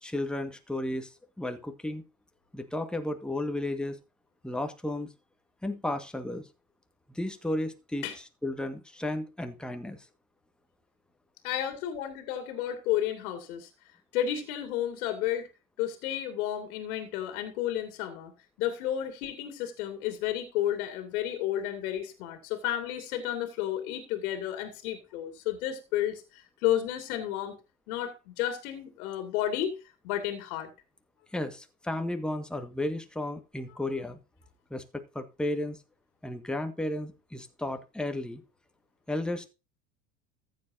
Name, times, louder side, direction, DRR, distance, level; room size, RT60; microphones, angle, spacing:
voice 1, 0.0-1.1 1.4-2.0 2.5-4.0 4.4-5.1 5.6-6.5 7.1-10.1 31.3-34.2 34.7-35.8 36.2-38.4 39.1-39.5, left 1 dB, ahead, 7 dB, 1.7 m, -33 dB
voice 2, 11.4-13.7 14.1-15.5 15.8-18.3 18.6-27.5 27.9-29.8 30.0-30.7, left 11 dB, 70° left, 8 dB, 2.4 m, -32 dB
14.5 x 7.7 x 2.7 m, 0.28 s
hypercardioid pair, 80°, 46 cm